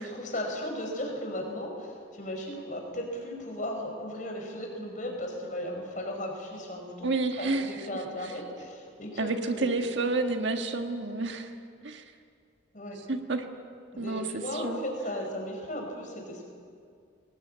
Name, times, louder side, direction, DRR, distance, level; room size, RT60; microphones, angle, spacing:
voice 1, 0.0-7.1 7.4-9.8 12.7-13.0 13.9-16.4, left 1 dB, 40° left, 2 dB, 5.0 m, -36 dB
voice 2, 7.0-7.8 8.2-8.3 9.2-11.5 11.8-12.1 13.1-13.5 14.0-14.8, right 3 dB, 70° right, 5 dB, 1.5 m, -30 dB
21.5 x 19.5 x 8.7 m, 2.3 s
head